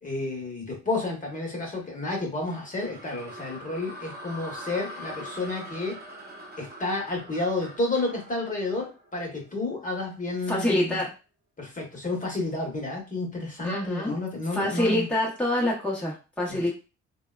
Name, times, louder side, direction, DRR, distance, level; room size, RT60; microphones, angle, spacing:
voice 1, 0.0-6.0 6.6-11.0 11.6-15.1 16.5-16.7, left 2 dB, 25° left, 0 dB, 1.1 m, -31 dB
sound 1, 2.5-9.6, equal, 30° right, 1.0 m, -43 dB
voice 2, 10.5-11.1 13.6-14.1 14.5-16.7, left 1 dB, 5° left, -4 dB, 0.8 m, -26 dB
3.2 x 2.2 x 2.3 m, 0.33 s
cardioid pair, 90°, 30 cm